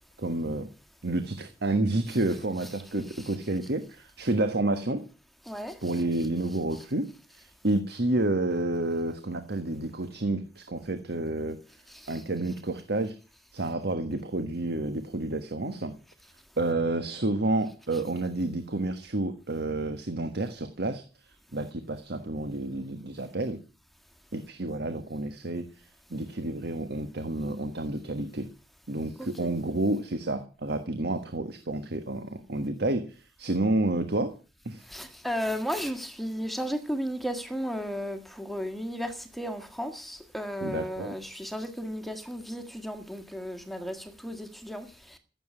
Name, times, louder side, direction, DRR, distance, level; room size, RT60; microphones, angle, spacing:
voice 1, 0.2-0.7 1.0-5.0 5.8-7.1 7.4-11.6 12.1-13.2 13.5-15.9 16.6-21.0 21.5-23.6 24.3-25.7 26.1-28.5 28.9-34.3 34.6-34.8 40.6-41.2, right 2 dB, 60° right, 1.4 m, -30 dB
voice 2, 5.5-6.0 11.9-12.2 17.9-18.0 29.2-29.5 34.9-45.2, equal, ahead, 1.7 m, -35 dB
15.0 x 8.0 x 8.8 m
head